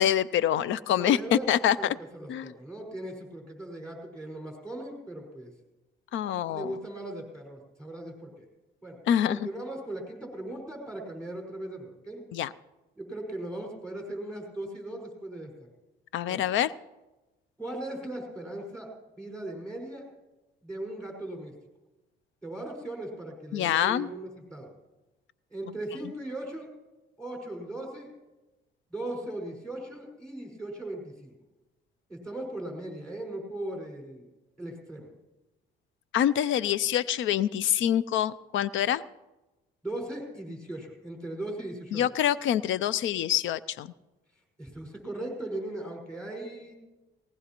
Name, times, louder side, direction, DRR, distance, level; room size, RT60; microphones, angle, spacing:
voice 1, 0.0-1.8 2.3-2.5 6.1-6.7 9.1-9.5 12.3-12.5 16.1-16.7 23.5-24.1 36.1-39.0 41.9-43.9, left 10 dB, 75° left, 19 dB, 0.5 m, -26 dB
voice 2, 0.9-1.5 1.8-5.5 6.3-8.5 8.8-9.0 9.3-12.2 12.9-15.5 16.3-16.4 17.6-20.1 20.6-21.5 22.4-24.7 25.5-26.7 27.2-28.1 28.9-31.3 32.1-34.3 34.6-35.1 39.8-42.1 44.6-46.7, right 1 dB, 5° left, 0 dB, 5.1 m, -38 dB
19.0 x 18.5 x 3.0 m, 1.1 s
cardioid pair, 90°, 20 cm